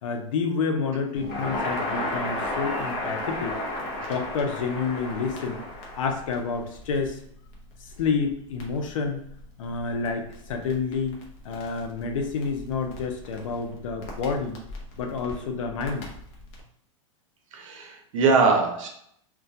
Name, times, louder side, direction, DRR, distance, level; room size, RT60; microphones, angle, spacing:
voice 1, 0.0-3.6 4.1-5.6 6.0-7.2 8.0-9.2 9.6-14.6 15.0-16.1, left 5 dB, 80° left, 4 dB, 0.5 m, -29 dB
Crackle, 1.1-16.6, left 1 dB, 40° left, 0.6 m, -35 dB
voice 2, 17.5-18.9, right 4 dB, 75° right, 2 dB, 0.7 m, -22 dB
2.2 x 2.2 x 2.6 m, 0.70 s
supercardioid pair, 145°, 17 cm